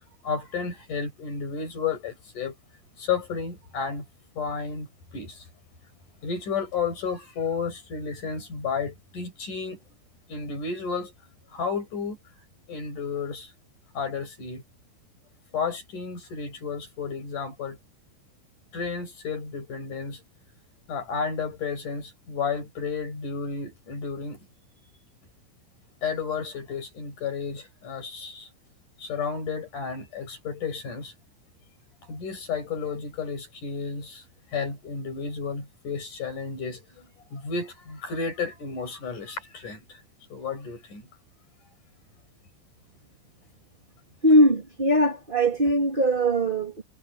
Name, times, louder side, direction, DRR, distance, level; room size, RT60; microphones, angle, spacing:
voice 1, 0.2-2.6 3.0-4.1 4.4-5.5 6.2-9.8 10.3-11.1 11.5-12.2 12.7-13.5 13.9-14.6 15.5-17.8 18.7-20.2 20.9-24.5 26.0-28.5 29.0-31.1 32.1-34.2 34.5-40.0 40.3-41.1, left 5 dB, 40° left, 7.9 m, -32 dB
voice 2, 44.2-46.8, equal, 15° right, 1.9 m, -21 dB
omnidirectional pair, 5.8 m